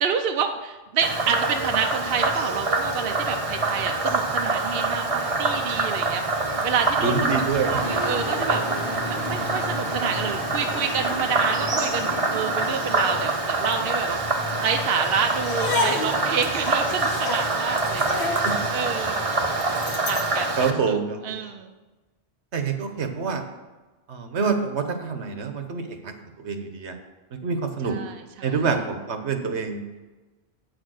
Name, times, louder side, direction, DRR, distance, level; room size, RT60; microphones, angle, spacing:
voice 1, 0.0-7.2 7.6-8.6 9.0-14.2 14.6-19.2 20.1-20.5 20.9-21.0 21.2-21.7 27.8-28.6, right 6 dB, 60° right, 5 dB, 0.8 m, -28 dB
Frog, 1.0-20.7, right 3 dB, 35° right, 1.0 m, -26 dB
voice 2, 7.0-7.8 18.4-18.5 20.6-21.4 22.5-23.4 24.1-27.0 27.4-28.0 28.4-29.8, right 5 dB, 80° right, 6 dB, 1.4 m, -26 dB
sound 1, 7.8-13.4, left 1 dB, 55° left, 1.3 m, -34 dB
sound 2, 15.4-20.4, left 4 dB, 75° left, 1.2 m, -31 dB
8.5 x 6.5 x 6.4 m, 1.2 s
omnidirectional pair, 1.1 m